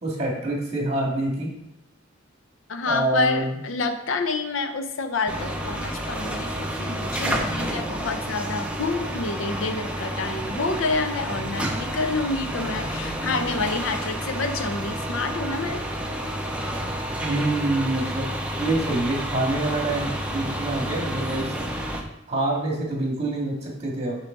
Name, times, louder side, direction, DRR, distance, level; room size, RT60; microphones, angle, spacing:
voice 1, 0.0-1.5 2.9-3.6 17.2-18.3 18.6-21.6 22.3-24.2, right 2 dB, 35° right, -1 dB, 1.9 m, -26 dB
voice 2, 2.7-15.9, left 3 dB, 80° left, 8 dB, 0.7 m, -28 dB
sound 1, 5.3-22.0, equal, 5° right, 0.6 m, -30 dB
7.0 x 4.4 x 3.9 m, 0.83 s
head